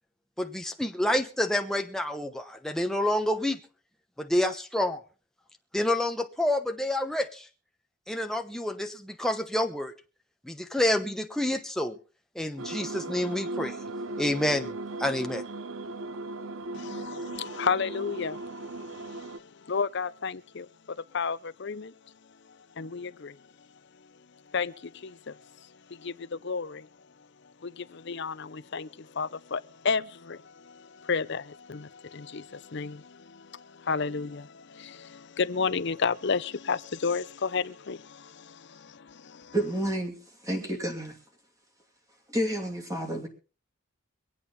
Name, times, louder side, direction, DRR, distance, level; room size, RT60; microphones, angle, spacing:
voice 1, 0.4-3.6 4.2-5.0 5.7-7.5 8.1-9.9 10.4-12.0 12.3-13.8 14.2-14.7 15.0-15.4, left 1 dB, ahead, 1.0 m, -28 dB
sound 1, 12.6-19.4, right 2 dB, 65° right, 0.7 m, -37 dB
voice 2, 16.7-18.7 18.9-20.7 21.1-21.9 22.8-23.4 24.5-25.4 25.9-26.9 27.6-39.5, left 5 dB, 50° left, 0.6 m, -32 dB
voice 3, 39.5-40.2 40.4-41.1 42.3-43.3, right 1 dB, 15° right, 2.7 m, -30 dB
24.5 x 8.6 x 4.1 m
head